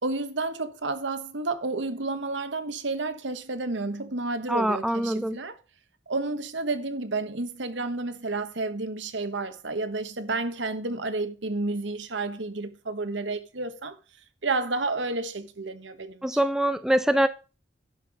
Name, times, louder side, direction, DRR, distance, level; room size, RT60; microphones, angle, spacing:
voice 1, 0.0-5.6 6.1-14.0 14.4-16.4, right 3 dB, 80° right, 1.3 m, -31 dB
voice 2, 4.5-5.4 16.2-17.3, right 1 dB, 5° right, 0.6 m, -24 dB
11.0 x 5.9 x 4.9 m
head